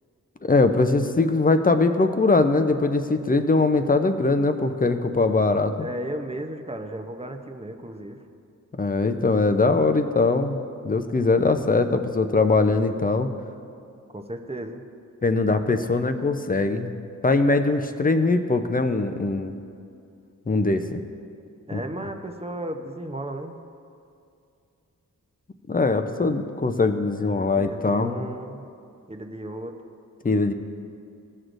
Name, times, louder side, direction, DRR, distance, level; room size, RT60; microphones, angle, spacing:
voice 1, 0.4-5.7 8.8-13.3 15.2-16.9 17.2-19.6 20.5-21.0 21.7-21.8 25.7-28.1 30.2-30.5, left 3 dB, 25° left, 8 dB, 0.6 m, -21 dB
voice 2, 5.8-8.2 11.6-11.7 14.1-14.8 21.7-23.6 27.5-28.7 29.1-29.8, right 1 dB, 20° right, 5 dB, 0.7 m, -34 dB
14.5 x 6.3 x 2.6 m, 2.5 s
cardioid pair, 45°, 33 cm